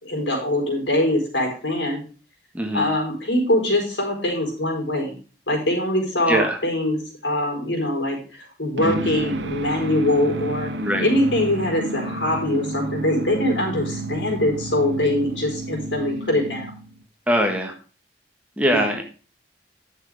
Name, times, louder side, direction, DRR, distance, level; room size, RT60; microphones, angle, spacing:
voice 1, 0.0-2.0 2.7-5.1 5.5-10.7 11.0-16.7 18.7-18.9, left 1 dB, 80° left, 1 dB, 4.5 m, -23 dB
voice 2, 2.5-2.9 6.3-6.6 10.8-11.0 17.3-17.7 18.6-19.0, equal, 10° right, 2 dB, 1.6 m, -21 dB
sound 1, 8.8-17.0, right 2 dB, 75° right, 1.2 m, -31 dB
11.0 x 6.6 x 4.9 m, 0.36 s
head